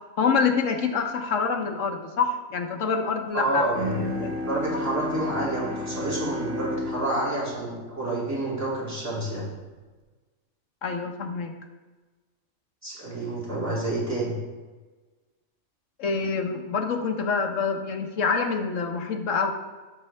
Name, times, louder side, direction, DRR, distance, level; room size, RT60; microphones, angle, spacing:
voice 1, 0.2-4.3 4.7-4.8 10.8-11.5 16.0-19.5, left 5 dB, 65° left, 4 dB, 1.2 m, -26 dB
voice 2, 3.3-9.4 12.8-14.3, right 1 dB, 10° right, -6 dB, 2.3 m, -29 dB
Bowed string instrument, 3.7-9.2, left 1 dB, 80° right, 1.5 m, -33 dB
9.9 x 6.0 x 3.3 m, 1.3 s
omnidirectional pair, 1.5 m